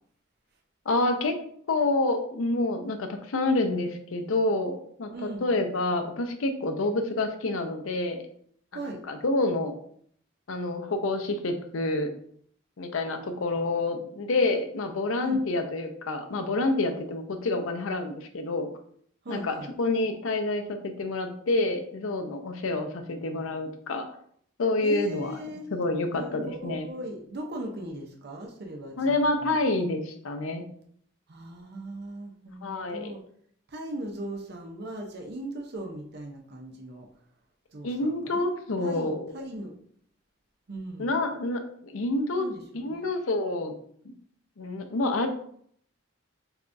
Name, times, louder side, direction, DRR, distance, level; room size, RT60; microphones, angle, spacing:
voice 1, 0.9-1.3 1.7-8.2 8.7-9.8 10.5-12.1 12.8-18.7 19.3-24.0 24.6-25.3 25.7-26.9 29.0-30.7 32.6-33.1 37.8-39.3 41.0-42.5 42.7-43.7 44.0-44.1 44.6-45.3, left 2 dB, 85° left, 7 dB, 0.6 m, -28 dB
voice 2, 5.1-5.5 8.7-9.0 15.2-15.4 19.2-19.7 24.8-25.7 26.1-29.6 31.3-33.2 33.7-37.1 37.7-38.5 38.8-39.8 40.7-41.1 42.3-43.1, right 1 dB, 50° right, 1 dB, 0.6 m, -38 dB
6.8 x 2.3 x 2.6 m, 0.64 s
head